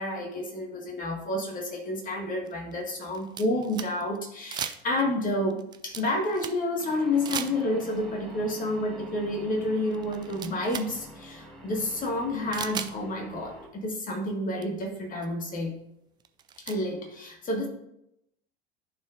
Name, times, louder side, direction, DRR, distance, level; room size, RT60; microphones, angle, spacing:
voice 1, 0.0-15.7 16.6-17.7, left 1 dB, 25° left, 1 dB, 1.7 m, -30 dB
sound 1, 1.4-1.5 2.4-4.2 4.5-5.1 5.5-6.8 7.2-8.0 9.4-9.5 9.9-10.9 11.2-11.3 12.5-12.9 14.2-14.3 14.6-14.7 15.2-15.3 16.2-16.8, right 8 dB, 15° right, 0.3 m, -37 dB
sound 2, 6.8-13.7, equal, ahead, 1.4 m, -46 dB
13.0 x 4.4 x 2.6 m, 0.81 s
figure-of-eight pair, 75°, 30 cm